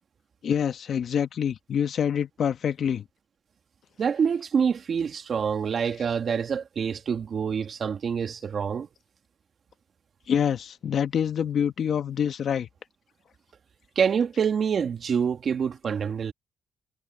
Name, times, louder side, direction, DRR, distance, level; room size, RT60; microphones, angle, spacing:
voice 1, 0.4-3.0 10.3-12.7, left 8 dB, 60° left, 1.3 m, -26 dB
voice 2, 4.0-8.9 14.0-16.3, right 6 dB, 50° right, 2.2 m, -26 dB
cardioid pair, 90°, 0 cm